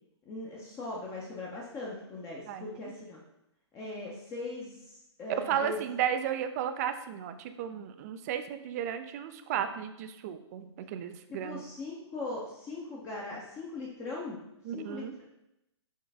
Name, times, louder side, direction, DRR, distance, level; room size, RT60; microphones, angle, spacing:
voice 1, 0.3-3.2 3.7-5.9 11.3-14.4 14.7-15.3, left 2 dB, 20° left, -3 dB, 0.6 m, -40 dB
voice 2, 5.3-11.6 14.6-15.2, right 9 dB, 35° right, 10 dB, 0.3 m, -34 dB
4.6 x 3.1 x 3.4 m, 0.86 s
hypercardioid pair, 130°, 15 cm